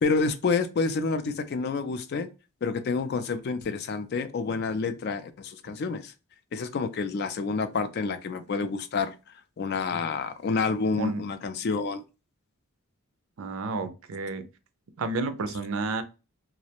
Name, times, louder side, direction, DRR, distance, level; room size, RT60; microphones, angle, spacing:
voice 1, 0.0-2.3 2.6-6.1 6.5-9.1 9.6-12.0, left 4 dB, 45° left, 0.3 m, -28 dB
voice 2, 13.4-14.4 15.0-16.0, right 3 dB, 65° right, 0.4 m, -30 dB
2.4 x 2.0 x 2.8 m
head